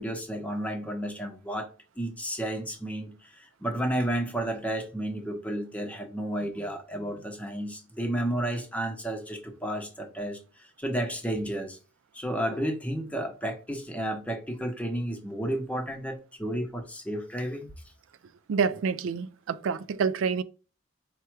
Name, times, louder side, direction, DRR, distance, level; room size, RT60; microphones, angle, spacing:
voice 1, 0.0-1.7 2.0-10.4 10.8-11.8 12.1-17.7, right 1 dB, 5° left, 0.7 m, -32 dB
voice 2, 18.5-20.4, right 6 dB, 90° right, 0.4 m, -27 dB
4.7 x 2.2 x 4.5 m
head